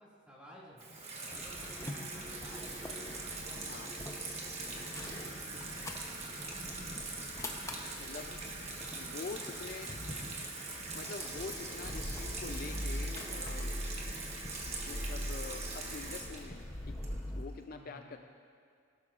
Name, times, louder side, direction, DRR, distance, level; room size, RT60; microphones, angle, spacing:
voice 1, 0.0-2.9 3.5-7.2 17.7-18.1, equal, 5° right, -6 dB, 2.1 m, -56 dB
sound 1, 0.8-14.5, equal, 70° left, 1.7 m, -54 dB
Water tap faucet / Sink (filling or washing), 0.8-17.5, right 3 dB, 30° right, 1.3 m, -42 dB
sound 2, 1.3-17.4, left 1 dB, 15° left, 0.7 m, -43 dB
voice 2, 8.0-8.3 8.9-9.9 10.9-13.7 14.9-17.0 17.4-18.2, left 4 dB, 45° left, 6 dB, 0.4 m, -45 dB
17.5 x 12.0 x 2.5 m, 2.2 s
head